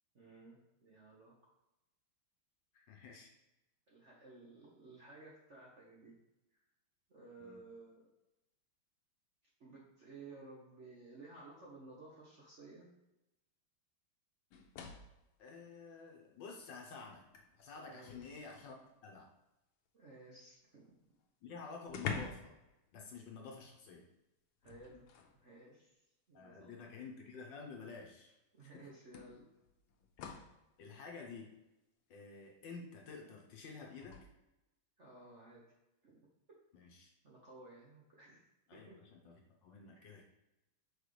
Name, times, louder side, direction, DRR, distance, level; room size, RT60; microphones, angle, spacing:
voice 1, 0.1-1.3 3.9-6.1 7.1-8.1 9.6-12.9 17.9-18.2 19.9-20.9 24.6-25.0 25.3-26.0 26.3-26.9 28.5-29.4 35.0-35.6 36.0-36.2 37.2-38.4 38.7-39.0 39.9-40.0, right 2 dB, 45° right, -4 dB, 1.0 m, -56 dB
voice 2, 2.7-3.3 7.4-7.6 15.4-17.3 17.6-18.8 19.0-19.3 21.4-22.6 22.9-24.1 26.3-28.3 28.6-28.9 30.2-30.4 30.8-31.5 32.1-34.3 36.7-37.1 38.7-40.2, left 4 dB, 65° left, 1 dB, 1.4 m, -50 dB
sound 1, 14.5-15.3 16.6-16.7 17.2-18.8 20.9-21.0 21.2-21.3 21.9-22.6 22.9-23.1 24.6-25.4 26.5-26.6 28.2-28.3 29.1-30.6 33.9-34.2, left 6 dB, 85° left, 1.6 m, -46 dB
6.5 x 4.6 x 3.2 m, 0.94 s
omnidirectional pair, 2.4 m